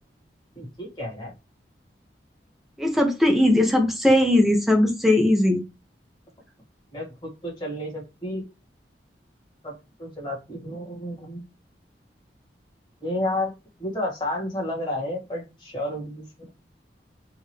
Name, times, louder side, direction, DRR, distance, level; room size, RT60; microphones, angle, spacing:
voice 1, 0.5-1.3 6.9-8.4 9.6-11.5 13.0-13.5 13.8-16.5, left 1 dB, 25° left, -2 dB, 1.7 m, -31 dB
voice 2, 2.8-5.6, left 1 dB, ahead, 3 dB, 0.6 m, -19 dB
3.7 x 2.6 x 3.1 m, 0.27 s
head